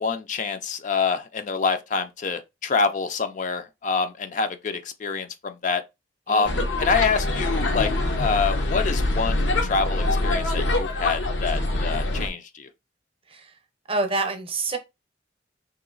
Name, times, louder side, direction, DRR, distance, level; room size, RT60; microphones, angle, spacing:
voice 1, 0.0-5.8 6.3-7.9 8.2-12.7, left 5 dB, 45° left, 0.4 m, -26 dB
sound 1, 6.4-12.3, left 2 dB, 85° left, 0.8 m, -24 dB
voice 2, 13.9-14.8, right 3 dB, 30° right, 0.7 m, -27 dB
3.2 x 2.9 x 3.7 m
head